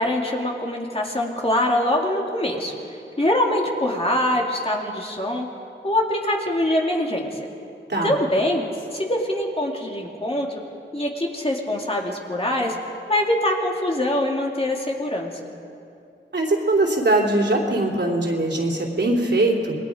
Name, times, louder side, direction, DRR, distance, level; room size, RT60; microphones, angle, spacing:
voice 1, 0.0-2.7 3.2-5.5 5.8-7.3 8.0-8.7 8.9-10.6 10.9-12.7 13.1-15.3, left 1 dB, 25° left, -1 dB, 2.8 m, -23 dB
voice 2, 16.3-19.8, right 2 dB, 55° right, -1 dB, 3.5 m, -21 dB
28.0 x 20.5 x 5.2 m, 2.6 s
wide cardioid pair, 75°, 21 cm